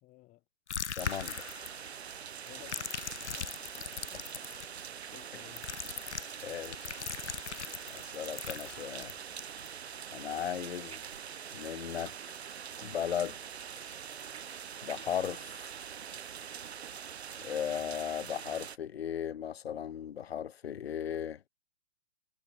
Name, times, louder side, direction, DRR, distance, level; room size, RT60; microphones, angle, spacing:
voice 1, 0.0-0.4 2.4-3.1 3.4-3.7 4.3-4.6 5.1-5.7, left 18 dB, 25° left, 3.9 m, -55 dB
sound 1, 0.7-2.0 2.5-4.7 5.6-9.7, left 7 dB, 90° left, 1.2 m, -40 dB
voice 2, 0.9-1.4 4.1-4.2 6.4-7.1 7.9-9.1 10.1-11.0 11.5-12.1 12.8-13.4 14.8-15.6 17.4-21.4, left 9 dB, 65° left, 1.4 m, -36 dB
sound 2, 1.0-18.8, right 8 dB, 70° right, 2.2 m, -44 dB
hypercardioid pair, 140°, 33 cm